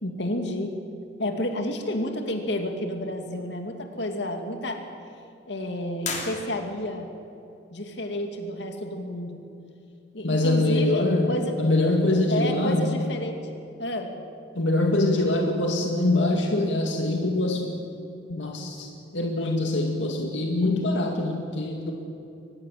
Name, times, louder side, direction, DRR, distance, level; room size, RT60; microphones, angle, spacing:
voice 1, 0.0-0.7 1.2-4.8 5.5-7.2 7.7-9.4 10.1-11.6 12.3-13.4 13.8-14.1, left 1 dB, 65° left, 4 dB, 2.6 m, -30 dB
sound 1, 6.0-7.0, left 4 dB, 40° left, 3.3 m, -34 dB
voice 2, 10.2-12.9 14.6-17.8 18.3-18.9 19.1-21.9, left 2 dB, 80° left, 2 dB, 2.2 m, -24 dB
23.5 x 20.0 x 7.6 m, 2.7 s
head